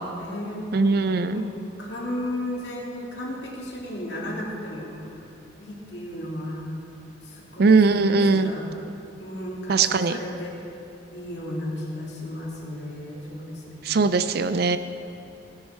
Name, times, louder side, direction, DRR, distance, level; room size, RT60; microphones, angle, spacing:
voice 1, 0.0-0.7 1.3-5.2 5.6-6.7 7.2-8.7 9.2-10.6 11.1-13.8, left 1 dB, 65° left, -4 dB, 2.7 m, -34 dB
voice 2, 0.7-1.4 7.6-8.5 9.7-10.2 13.8-14.8, right 4 dB, 55° right, 11 dB, 0.4 m, -20 dB
17.0 x 10.5 x 4.4 m, 2.8 s
head